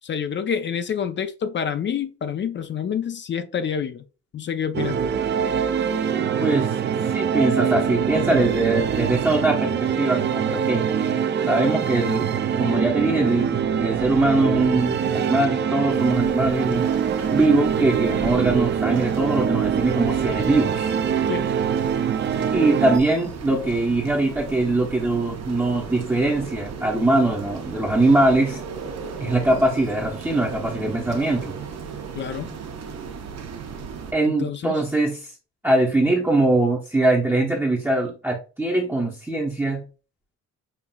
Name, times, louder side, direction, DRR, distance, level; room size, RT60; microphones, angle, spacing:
voice 1, 0.0-4.0 4.3-5.1 21.3-21.4 32.1-32.6 34.3-34.8, left 7 dB, 40° left, 0.4 m, -28 dB
sound 1, 4.7-23.0, right 7 dB, 35° right, 0.4 m, -24 dB
voice 2, 6.4-6.8 7.1-10.9 11.5-16.9 17.3-20.9 22.5-28.6 29.2-31.6 34.1-35.3 35.6-39.8, right 2 dB, 5° right, 0.7 m, -22 dB
sound 2, 15.9-34.1, right 6 dB, 60° right, 0.8 m, -36 dB
5.6 x 2.4 x 2.2 m
cardioid pair, 90°, 30 cm